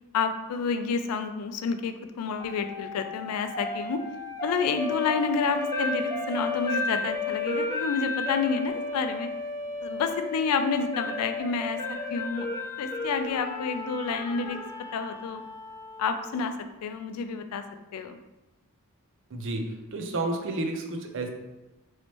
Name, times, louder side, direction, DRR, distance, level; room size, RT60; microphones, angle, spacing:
voice 1, 0.1-4.0 4.4-9.3 9.8-12.5 12.8-14.6 14.9-15.4 16.0-16.6 16.8-17.6 17.9-18.2, left 5 dB, 75° left, 8 dB, 0.3 m, -29 dB
sound 1, 2.4-16.5, left 2 dB, 15° left, 0.5 m, -33 dB
voice 2, 19.3-21.3, right 2 dB, 60° right, 4 dB, 0.5 m, -31 dB
3.1 x 3.0 x 2.9 m, 1.1 s
head